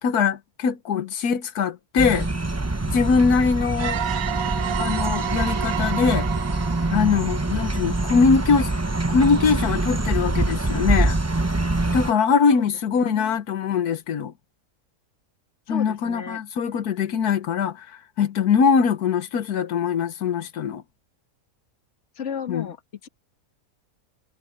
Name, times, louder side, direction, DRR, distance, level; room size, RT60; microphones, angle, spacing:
voice 1, 0.0-2.3 2.9-4.0 4.8-6.3 6.9-8.7 9.1-11.2 11.9-14.3 15.7-17.9 18.2-20.8 22.5-22.6, left 6 dB, 85° left, 1.6 m, -22 dB
sound 1, 2.0-12.1, right 2 dB, 15° right, 0.6 m, -25 dB
sound 2, 3.8-8.4, right 10 dB, 75° right, 1.2 m, -31 dB
voice 2, 12.6-13.4 15.7-16.4 22.1-23.1, left 7 dB, 50° left, 1.9 m, -34 dB
omnidirectional pair, 1.6 m